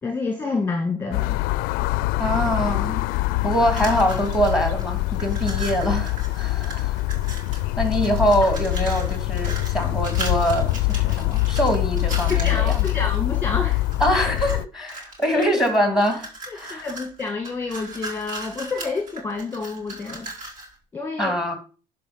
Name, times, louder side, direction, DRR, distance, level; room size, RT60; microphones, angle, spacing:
voice 1, 0.0-1.4 12.3-13.8 15.3-15.6 16.5-20.3 20.9-21.4, left 3 dB, 15° left, 3 dB, 1.7 m, -28 dB
sound 1, 1.1-14.7, left 19 dB, 85° left, 0.4 m, -24 dB
voice 2, 2.2-3.0 3.4-7.0 7.8-12.8 14.0-16.9 21.2-21.6, equal, 5° right, 6 dB, 2.7 m, -24 dB
sound 2, 3.5-4.8 5.1-7.7 8.0-13.2 13.7-14.6 14.9-20.7, right 2 dB, 60° right, 4.4 m, -38 dB
11.0 x 5.3 x 5.7 m, 0.36 s
cardioid pair, 125°, 15 cm